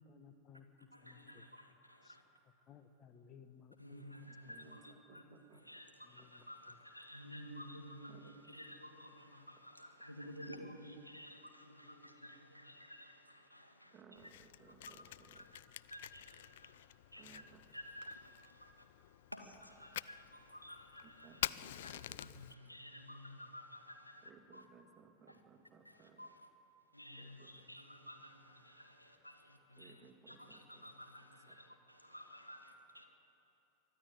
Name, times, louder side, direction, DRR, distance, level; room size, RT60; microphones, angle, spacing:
voice 1, 0.0-1.4 2.0-2.2 2.7-4.0 4.4-4.6 6.0-6.8, left 7 dB, 30° left, 10 dB, 1.3 m, -60 dB
voice 2, 0.9-2.2 3.8-5.2 5.5-14.3 14.9-15.0 15.3-15.6 15.9-18.9 19.3-24.7 25.3-25.4 25.8-26.5 26.9-33.0, equal, 90° left, 3 dB, 1.9 m, -53 dB
voice 3, 4.2-5.6 8.1-8.3 13.9-15.5 17.2-17.6 21.0-22.4 24.2-26.3 27.2-27.7 29.8-30.9 31.5-31.6, right 6 dB, 20° right, 3 dB, 2.0 m, -62 dB
Fire, 14.2-22.5, left 13 dB, 55° left, 0.4 m, -48 dB
23.5 x 12.5 x 9.2 m, 2.9 s
figure-of-eight pair, 90°, 0 cm